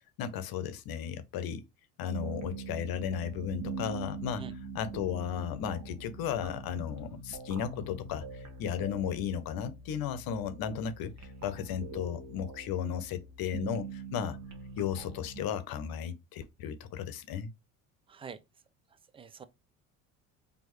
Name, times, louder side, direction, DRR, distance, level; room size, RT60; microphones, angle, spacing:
voice 1, 0.2-1.6 2.0-14.4 14.8-17.5, left 8 dB, 55° left, 0.8 m, -35 dB
sound 1, 2.1-15.4, right 4 dB, 40° right, 1.1 m, -43 dB
voice 2, 19.1-19.5, right 6 dB, 15° right, 0.3 m, -44 dB
4.4 x 2.7 x 3.1 m
hypercardioid pair, 65°, 43 cm